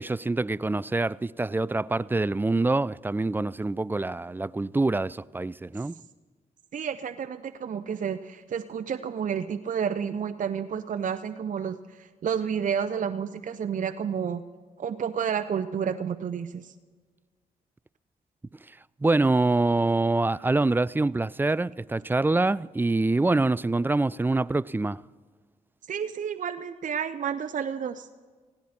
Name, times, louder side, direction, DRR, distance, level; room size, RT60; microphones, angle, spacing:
voice 1, 0.0-5.9 19.0-25.0, right 2 dB, 15° right, 0.3 m, -25 dB
voice 2, 6.7-14.4 14.8-16.7 25.9-28.1, right 7 dB, 55° right, 0.6 m, -30 dB
19.0 x 16.5 x 4.4 m
cardioid pair, 60°, 16 cm